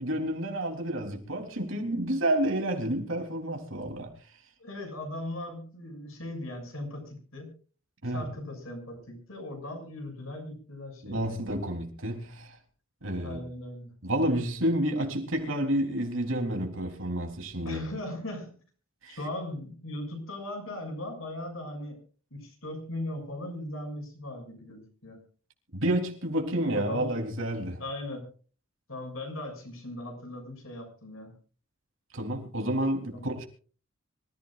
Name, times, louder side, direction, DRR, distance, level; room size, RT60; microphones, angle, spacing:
voice 1, 0.0-4.1 8.0-8.2 11.0-12.6 13.0-13.4 14.0-17.8 19.0-19.2 25.7-27.8 32.1-33.5, right 1 dB, 65° right, 3.7 m, -30 dB
voice 2, 4.6-7.5 8.0-11.2 13.2-13.9 17.6-18.6 19.1-22.0 22.3-25.2 26.6-27.1 27.8-28.3 28.9-31.4 33.1-33.3, left 1 dB, 75° left, 7.0 m, -38 dB
25.5 x 15.0 x 2.5 m
head